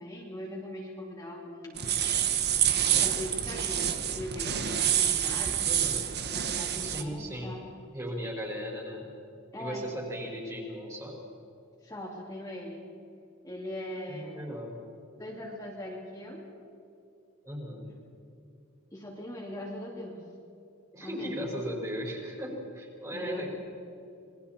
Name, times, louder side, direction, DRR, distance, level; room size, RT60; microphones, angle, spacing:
voice 1, 0.0-1.8 2.8-5.8 6.3-7.6 9.5-9.9 11.8-12.8 13.4-14.6 15.2-16.5 18.9-20.2 21.0-21.4 23.1-23.5, left 1 dB, 15° left, -4 dB, 2.8 m, -40 dB
sound 1, 1.8-7.0, right 9 dB, 55° right, 1.2 m, -27 dB
voice 2, 5.6-6.0 6.8-7.6 7.9-9.1 9.6-11.1 14.1-14.8 17.4-17.9 20.9-23.5, equal, 15° right, -1 dB, 5.1 m, -37 dB
27.0 x 21.5 x 4.5 m, 2.7 s
head